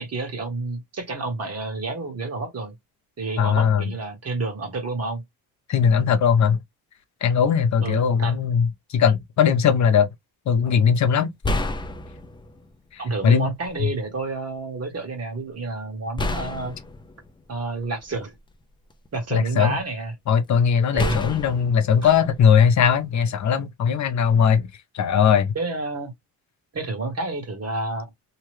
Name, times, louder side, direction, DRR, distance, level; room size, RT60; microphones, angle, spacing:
voice 1, 0.0-2.7 3.2-5.2 5.9-6.1 7.8-8.3 13.0-16.7 17.5-18.3 19.1-20.1 20.9-21.2 22.0-22.1 25.5-26.1 26.7-28.1, right 3 dB, 40° right, 1.3 m, -29 dB
voice 2, 3.4-3.8 5.7-6.6 7.2-10.1 10.5-11.3 12.9-13.5 19.3-19.8 20.3-24.7 24.9-25.5, left 7 dB, 50° left, 0.6 m, -19 dB
sound 1, 10.7-10.8 11.4-12.7 13.6-13.8 16.2-18.3 18.9-19.8 21.0-23.0, left 2 dB, 15° left, 0.3 m, -30 dB
2.8 x 2.2 x 3.1 m
cardioid pair, 135°, 37 cm